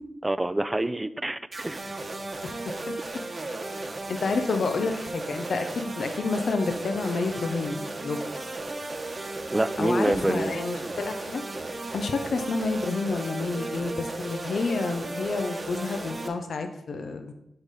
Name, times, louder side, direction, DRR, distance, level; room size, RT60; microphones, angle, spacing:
voice 1, 0.2-1.8 9.5-10.5, right 1 dB, 20° right, 13 dB, 0.4 m, -26 dB
sound 1, 1.5-16.3, right 2 dB, 40° right, 1.1 m, -35 dB
voice 2, 4.1-8.2 9.8-11.4 11.9-17.3, left 4 dB, 70° left, 7 dB, 0.6 m, -29 dB
10.5 x 3.8 x 4.1 m, 0.85 s
cardioid pair, 45°, 0 cm